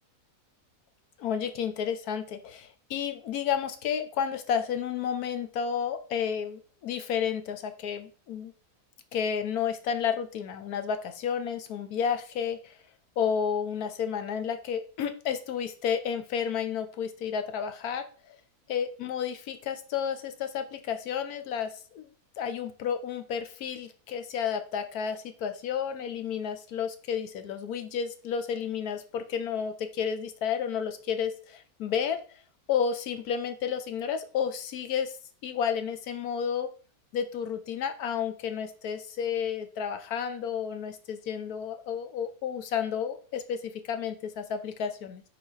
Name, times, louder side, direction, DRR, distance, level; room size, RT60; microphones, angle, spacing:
voice 1, 1.2-8.5 9.1-12.8 13.2-18.4 18.7-22.1 22.4-32.4 32.7-35.1 35.4-36.7 37.1-45.2, left 7 dB, 75° left, 9 dB, 1.2 m, -31 dB
6.4 x 4.3 x 4.0 m, 0.41 s
omnidirectional pair, 1.7 m